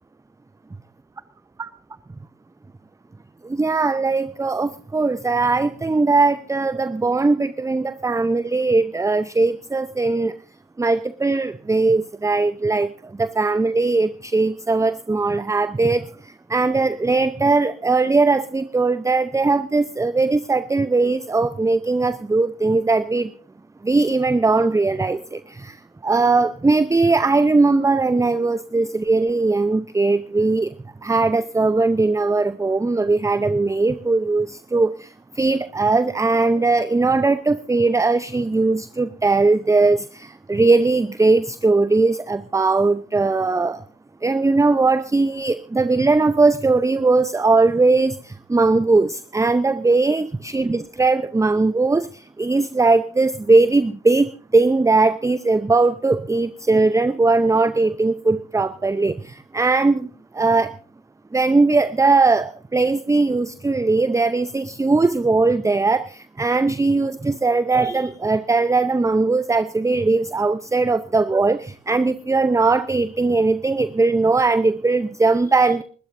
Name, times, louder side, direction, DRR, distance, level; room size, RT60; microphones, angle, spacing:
voice 1, 3.4-10.3 10.8-23.3 23.8-25.8 26.0-30.7 31.0-43.8 44.2-60.1 60.3-60.7 61.3-75.8, right 3 dB, 10° right, 14 dB, 0.6 m, -19 dB
27.5 x 13.0 x 2.6 m, 0.40 s
hypercardioid pair, 55°, 31 cm